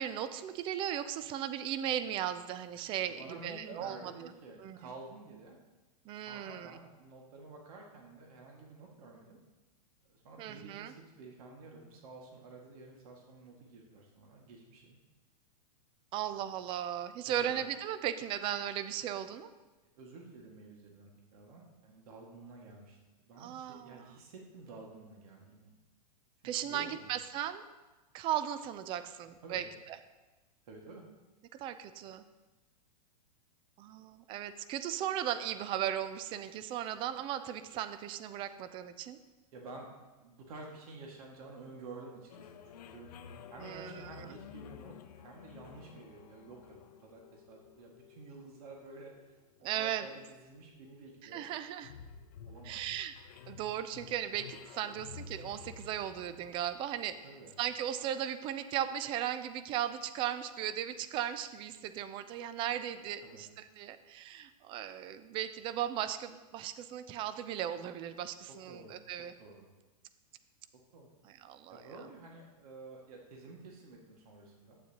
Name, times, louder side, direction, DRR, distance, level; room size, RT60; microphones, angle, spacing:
voice 1, 0.0-4.3 4.6-4.8 6.1-6.8 10.4-10.9 16.1-19.5 23.4-24.1 26.4-27.6 28.1-30.0 31.5-32.2 33.8-39.2 43.6-44.3 49.6-50.1 51.2-51.9 52.6-53.1 53.5-57.2 57.6-69.3 71.2-71.9, right 11 dB, 25° right, 12 dB, 0.4 m, -37 dB
voice 2, 3.1-5.6 6.1-9.4 10.0-15.0 17.2-17.7 20.0-25.7 26.4-27.2 29.4-29.7 30.7-31.0 39.5-39.9 40.2-43.1 43.5-49.4 49.7-51.5 52.4-52.8 57.2-57.5 63.2-63.4 68.5-69.7 70.7-71.1 71.7-74.8, right 3 dB, 65° right, 0 dB, 1.9 m, -51 dB
sound 1, 42.3-57.7, left 7 dB, 75° left, 0.7 m, -53 dB
12.0 x 8.7 x 2.9 m, 1.1 s
hypercardioid pair, 140°, 20 cm